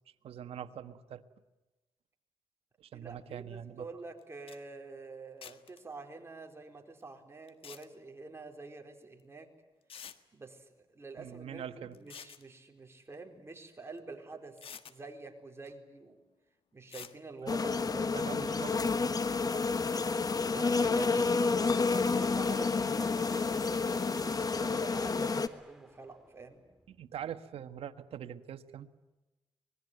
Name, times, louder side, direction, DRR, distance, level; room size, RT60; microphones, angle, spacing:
voice 1, 0.2-1.2 2.8-3.9 11.2-12.0 17.4-17.6 18.1-19.0 21.4-21.5 26.9-28.9, right 9 dB, 80° right, 9 dB, 1.4 m, -43 dB
voice 2, 2.9-9.5 10.3-14.6 14.9-16.2 16.7-18.8 20.5-26.6, right 3 dB, 25° right, 3 dB, 4.4 m, -48 dB
sound 1, 4.2-4.3 4.5-4.6 5.4-5.8 7.5-7.9 9.2-9.3 9.9-10.2 11.9-12.4 14.0-14.1 14.6-15.0 16.9-17.2, left 7 dB, 70° left, 1.6 m, -48 dB
sound 2, 17.5-25.5, left 4 dB, 40° left, 1.4 m, -30 dB
sound 3, 21.6-27.3, right 1 dB, 5° right, 3.1 m, -53 dB
25.0 x 21.0 x 9.4 m, 1.1 s
cardioid pair, 85°, 10 cm